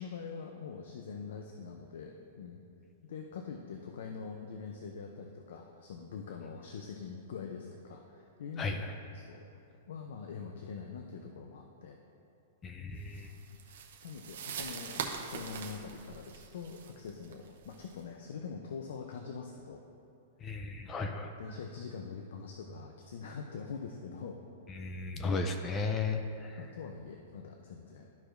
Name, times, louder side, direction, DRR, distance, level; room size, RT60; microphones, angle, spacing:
voice 1, 0.0-2.6 3.0-12.0 13.7-19.8 20.8-20.9 21.4-24.4 26.6-28.1, left 5 dB, 75° left, 3 dB, 0.6 m, -44 dB
voice 2, 8.6-8.9 12.6-13.3 20.4-21.3 24.8-26.6, left 3 dB, 20° left, 6 dB, 0.4 m, -35 dB
sound 1, 13.1-18.0, right 6 dB, 75° right, 0.8 m, -43 dB
12.5 x 4.8 x 2.6 m, 2.7 s
supercardioid pair, 155°, 0 cm